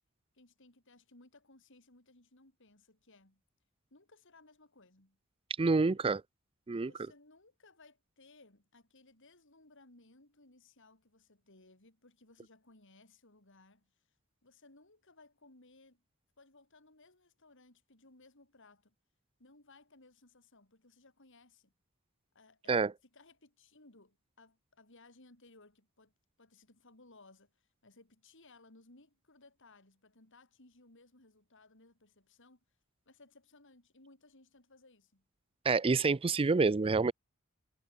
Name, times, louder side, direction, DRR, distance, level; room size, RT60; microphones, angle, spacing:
voice 1, 0.3-3.4 3.9-5.2 6.9-14.0 14.4-16.0 16.4-18.9 19.4-21.7 22.3-26.1 26.4-32.6 33.0-35.2, left 2 dB, 60° left, 4.9 m, -62 dB
voice 2, 5.6-6.2 6.7-6.9 22.7-22.9 35.6-37.1, right 4 dB, 25° right, 0.4 m, -27 dB
head